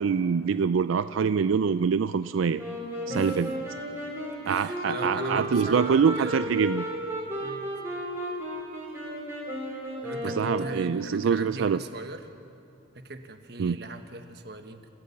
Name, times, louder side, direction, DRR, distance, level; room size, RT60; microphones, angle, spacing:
voice 1, 0.0-2.6 3.1-3.5 4.5-6.9 10.2-11.8 13.6-13.8, right 6 dB, 90° right, 13 dB, 0.4 m, -25 dB
Wind instrument woodwind instrument, 2.6-11.3, equal, 15° right, 4.0 m, -34 dB
voice 2, 3.1-3.4 4.4-6.4 7.4-7.7 10.0-12.2 12.9-14.9, right 2 dB, 55° right, 7 dB, 1.4 m, -39 dB
28.5 x 15.5 x 7.2 m, 2.8 s
head